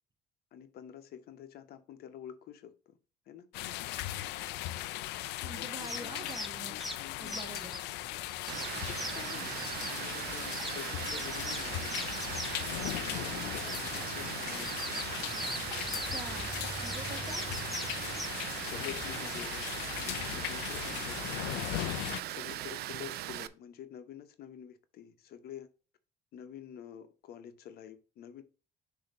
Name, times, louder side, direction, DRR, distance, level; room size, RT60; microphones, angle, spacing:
voice 1, 0.5-3.0 3.3-3.5 5.5-6.3 6.7-7.4 8.6-9.6 9.8-12.1 12.7-14.8 18.7-21.6 22.3-25.7 26.3-28.4, left 9 dB, 65° left, 0.9 m, -48 dB
sound 1, 3.5-22.2, left 15 dB, 90° left, 0.4 m, -38 dB
voice 2, 5.4-6.8 7.2-7.8 15.9-16.5 16.8-17.4, right 3 dB, 25° right, 1.1 m, -45 dB
sound 2, 5.8-18.3, equal, ahead, 0.8 m, -43 dB
Water, 8.5-23.5, right 13 dB, 70° right, 0.5 m, -39 dB
6.5 x 2.9 x 5.4 m
cardioid pair, 110°, 17 cm